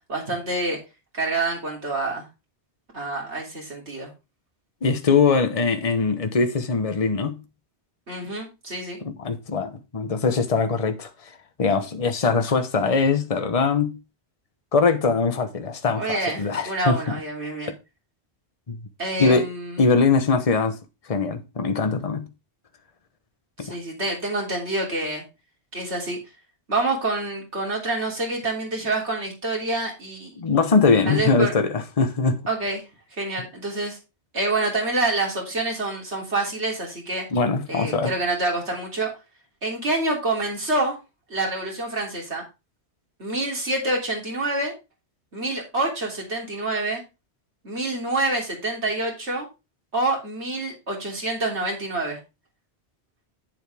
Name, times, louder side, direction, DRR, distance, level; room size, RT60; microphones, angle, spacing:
voice 1, 0.1-0.8 1.1-2.3 2.9-4.1 8.1-9.0 16.0-17.7 19.0-19.8 23.6-25.2 25.7-26.2 26.7-30.3 31.1-31.5 32.5-32.8 33.1-34.0 34.3-37.3 37.7-39.1 39.6-41.0 41.3-42.4 43.2-44.7 45.3-47.0 47.6-49.5 49.9-52.2, right 2 dB, 90° right, 3.6 m, -27 dB
voice 2, 4.8-7.4 9.0-11.1 11.6-14.0 14.7-16.9 18.7-18.8 19.2-19.5 19.8-20.8 21.1-22.3 23.6-23.8 30.4-32.4 37.3-38.1, left 4 dB, 35° left, 1.1 m, -22 dB
8.8 x 7.6 x 3.5 m
omnidirectional pair, 1.1 m